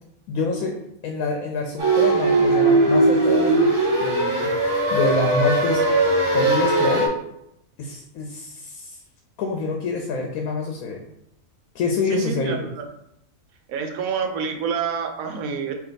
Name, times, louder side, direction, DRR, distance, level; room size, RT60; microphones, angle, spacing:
voice 1, 0.3-0.8 1.0-5.8 6.3-7.1 7.8-9.0 9.4-11.0 11.7-12.7, left 3 dB, 80° left, 2 dB, 1.0 m, -26 dB
sound 1, 1.8-7.1, right 2 dB, 30° right, 0.5 m, -19 dB
voice 2, 12.1-12.8 13.7-15.7, right 6 dB, 75° right, 4 dB, 1.0 m, -28 dB
3.4 x 2.6 x 3.9 m, 0.79 s
omnidirectional pair, 1.5 m